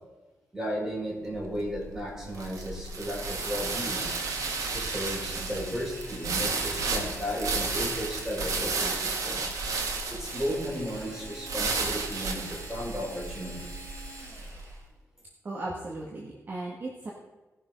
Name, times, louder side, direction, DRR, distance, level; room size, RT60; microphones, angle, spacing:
voice 1, 0.5-4.1 4.7-9.4 10.1-13.7, equal, 10° right, -4 dB, 4.8 m, -34 dB
sound 1, 1.4-14.6, right 4 dB, 85° right, 1.8 m, -33 dB
Drill, 3.2-9.2 10.2-14.9, right 2 dB, 65° right, 3.6 m, -46 dB
voice 2, 15.4-17.1, right 2 dB, 35° right, -3 dB, 1.6 m, -36 dB
17.5 x 6.3 x 5.2 m, 1.2 s
wide cardioid pair, 140°, 6 cm